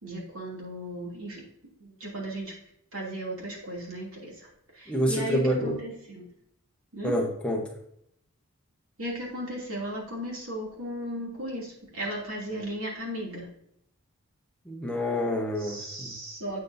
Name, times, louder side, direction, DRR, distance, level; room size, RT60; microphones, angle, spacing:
voice 1, 0.0-1.4 1.8-2.5 2.9-6.3 6.9-7.1 9.0-13.5 15.6-16.6, right 1 dB, 65° right, -3 dB, 2.8 m, -36 dB
voice 2, 4.9-5.7 7.0-7.6 14.6-16.1, equal, 5° left, 0 dB, 1.0 m, -27 dB
8.1 x 7.4 x 2.7 m, 0.73 s
head